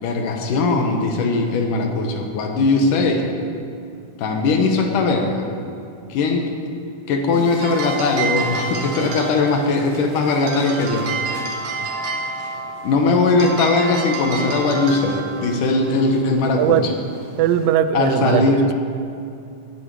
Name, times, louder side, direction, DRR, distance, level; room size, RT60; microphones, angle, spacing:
voice 1, 0.0-3.3 4.2-5.5 6.1-6.5 7.1-11.1 12.8-16.9 17.9-18.7, left 3 dB, 70° left, 3 dB, 2.6 m, -19 dB
sound 1, 7.3-17.7, right 4 dB, 75° right, 3.1 m, -30 dB
voice 2, 17.4-18.5, right 10 dB, 90° right, 12 dB, 2.3 m, -18 dB
15.5 x 11.5 x 4.7 m, 2.5 s
omnidirectional pair, 4.0 m